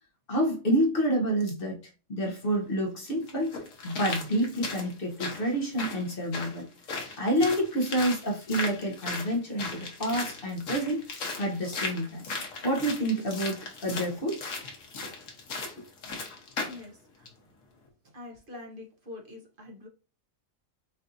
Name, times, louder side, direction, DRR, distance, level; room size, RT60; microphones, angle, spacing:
voice 1, 0.3-3.6 3.8-6.7 7.2-11.0 11.4-12.2 12.6-14.4, right 1 dB, 50° left, 1.1 m, -28 dB
sound 1, 2.4-2.5 3.3-16.9 17.3-17.4, left 3 dB, 85° left, 1.4 m, -37 dB
voice 2, 16.7-17.3 18.0-19.9, left 2 dB, 45° right, 1.0 m, -45 dB
5.6 x 2.6 x 2.6 m
omnidirectional pair, 1.3 m